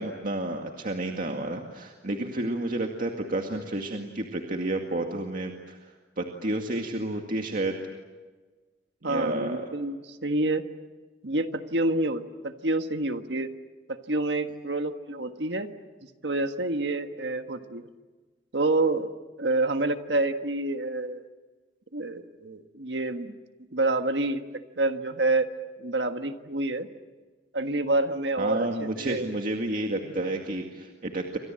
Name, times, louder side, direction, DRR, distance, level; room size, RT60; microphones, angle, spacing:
voice 1, 0.0-5.9 6.2-7.8 9.0-9.7 28.4-31.4, right 1 dB, 50° right, 2 dB, 2.1 m, -31 dB
voice 2, 9.0-10.6 11.2-13.5 13.9-15.7 16.2-17.9 18.5-19.1 19.4-21.2 21.9-23.3 23.7-24.4 24.8-25.5 25.8-26.9 27.5-29.3 30.0-30.1, right 2 dB, 70° right, 7 dB, 1.6 m, -28 dB
29.0 x 26.0 x 7.7 m, 1.3 s
head